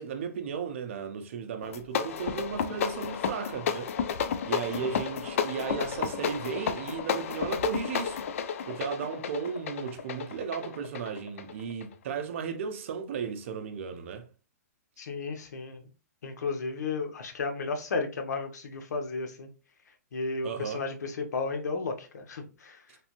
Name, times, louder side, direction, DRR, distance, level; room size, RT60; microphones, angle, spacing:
voice 1, 0.0-3.9 4.5-8.2 8.7-14.3 20.4-20.8, right 6 dB, 50° right, 0.5 m, -35 dB
sound 1, 1.6-11.9, left 7 dB, 55° left, 0.4 m, -32 dB
voice 2, 15.0-15.8 16.2-19.5 20.1-22.8, left 4 dB, 85° left, 0.7 m, -33 dB
3.3 x 2.6 x 2.9 m
hypercardioid pair, 165°, 9 cm